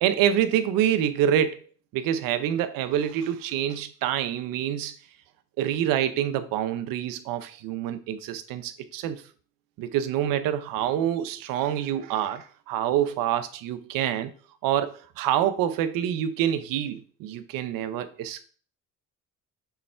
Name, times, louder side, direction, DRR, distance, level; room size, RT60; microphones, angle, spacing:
voice 1, 0.0-1.6 1.9-4.9 5.6-9.2 9.8-14.3 14.6-18.4, right 10 dB, 85° right, 0.8 m, -26 dB
7.1 x 3.3 x 4.4 m
cardioid pair, 95°, 33 cm